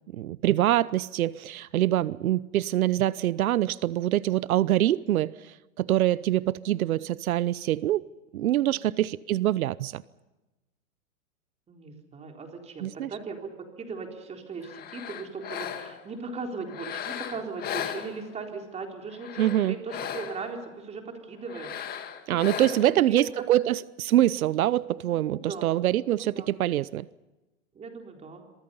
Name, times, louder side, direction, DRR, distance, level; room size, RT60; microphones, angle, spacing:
voice 1, 0.1-8.0 8.3-10.0 12.8-13.1 19.4-19.7 22.3-27.1, right 13 dB, 85° right, 0.8 m, -25 dB
voice 2, 11.7-21.8 22.3-22.5 22.8-23.2 23.5-23.6 25.3-25.8 26.2-26.5 27.7-28.4, right 4 dB, 15° right, 3.9 m, -38 dB
sound 1, 14.6-16.1 16.7-18.6 19.1-20.6 21.5-23.0, left 9 dB, 20° left, 2.0 m, -37 dB
28.0 x 23.5 x 5.5 m
supercardioid pair, 150°, 41 cm